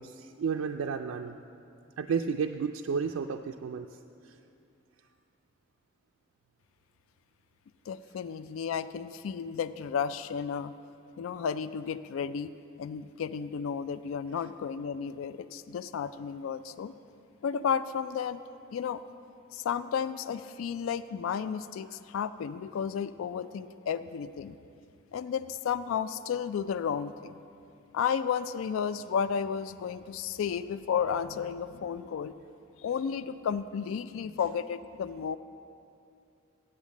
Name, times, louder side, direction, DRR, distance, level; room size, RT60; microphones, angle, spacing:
voice 1, 0.0-1.4 2.0-4.0 4.2-4.4, right 6 dB, 90° right, 4 dB, 0.3 m, -32 dB
voice 2, 7.9-10.7 11.2-12.5 12.8-16.9 17.4-18.4 18.7-19.0 19.5-24.6 25.1-27.4 27.9-32.3 32.8-35.4, left 7 dB, 75° left, 14 dB, 0.3 m, -33 dB
8.5 x 8.2 x 7.2 m, 2.5 s
head